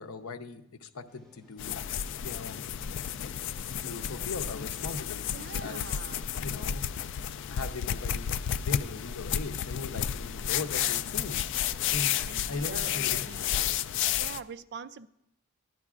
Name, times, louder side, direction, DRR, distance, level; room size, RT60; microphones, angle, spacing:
voice 1, 0.0-1.8 2.2-2.6 3.8-6.0 6.4-6.9 7.5-8.3 8.6-11.4 11.9-12.2 12.5-13.3, left 3 dB, 80° left, 7 dB, 0.7 m, -39 dB
sound 1, 1.1-11.9, left 1 dB, ahead, 2.6 m, -56 dB
sound 2, 1.6-14.4, left 9 dB, 55° left, 0.3 m, -32 dB
voice 2, 5.3-6.3 12.3-13.7 14.2-15.1, right 5 dB, 50° right, 12 dB, 0.4 m, -44 dB
15.0 x 11.0 x 2.4 m, 0.76 s
head